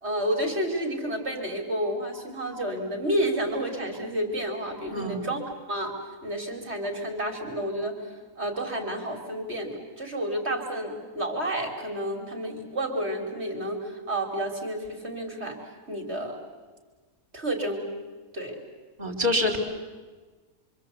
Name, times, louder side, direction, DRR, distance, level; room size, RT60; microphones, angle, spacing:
voice 1, 0.0-5.4 5.7-6.0 6.2-8.0 8.4-15.6 15.9-16.4 17.3-17.9 18.3-18.6, right 1 dB, 45° right, 2 dB, 3.5 m, -30 dB
voice 2, 4.9-5.3 19.0-19.6, left 1 dB, 25° right, 1 dB, 4.5 m, -26 dB
26.5 x 25.5 x 8.4 m, 1.3 s
omnidirectional pair, 1.5 m